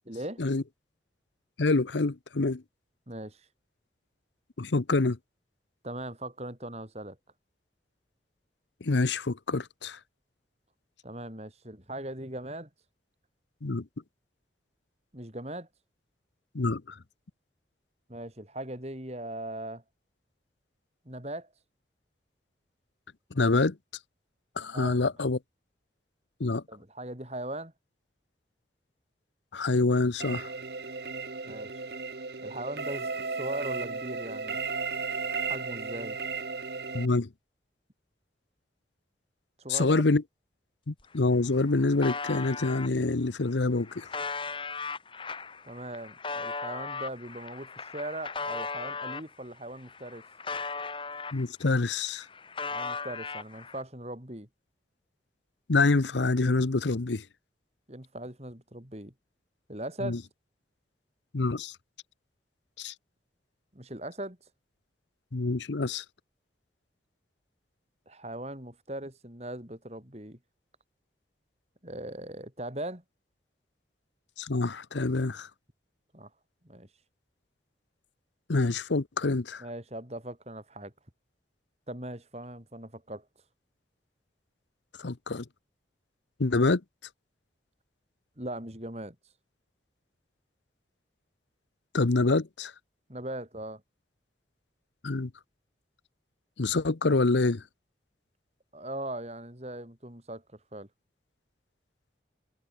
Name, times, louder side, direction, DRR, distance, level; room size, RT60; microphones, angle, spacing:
voice 1, 0.1-0.4 3.1-3.5 5.8-7.2 11.0-12.7 15.1-15.7 18.1-19.8 21.0-21.5 24.7-25.1 26.7-27.7 31.5-31.7 32.4-34.6 35.4-36.2 39.6-40.0 45.6-50.2 52.7-54.5 57.9-59.1 59.7-60.2 63.7-64.4 68.1-70.4 71.8-73.0 76.1-76.3 76.6-76.9 79.6-80.9 81.9-83.3 88.4-89.2 93.1-93.8 98.7-100.4 100.7-100.9, right 1 dB, 35° right, 4.3 m, -39 dB
voice 2, 1.6-2.6 4.6-5.2 8.8-10.0 13.6-13.9 16.5-17.0 23.3-23.8 24.6-25.4 26.4-26.6 29.5-30.5 36.9-37.3 39.7-40.2 40.9-44.1 51.3-52.3 55.7-57.2 60.0-60.2 61.3-61.8 62.8-62.9 65.3-66.0 74.4-75.5 78.5-79.6 85.0-85.4 86.4-86.8 91.9-92.7 95.0-95.3 96.6-97.6, left 3 dB, 80° left, 0.9 m, -26 dB
sound 1, 30.2-37.1, right 4 dB, 60° right, 1.2 m, -35 dB
sound 2, 41.0-41.1 41.3-42.9 43.5-49.3 49.8-51.7 52.0-53.8, left 4 dB, 30° left, 2.6 m, -37 dB
head